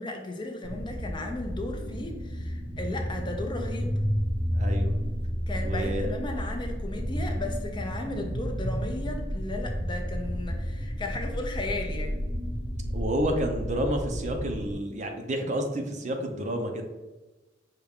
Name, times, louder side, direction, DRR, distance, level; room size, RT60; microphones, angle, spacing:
voice 1, 0.0-4.0 5.5-12.2, left 2 dB, 25° left, 3 dB, 0.5 m, -35 dB
sound 1, 0.6-14.7, equal, 60° left, 1.3 m, -31 dB
voice 2, 4.5-5.0 5.6-6.1 12.9-16.8, equal, 40° right, 4 dB, 0.5 m, -30 dB
5.6 x 2.4 x 3.5 m, 1.1 s
head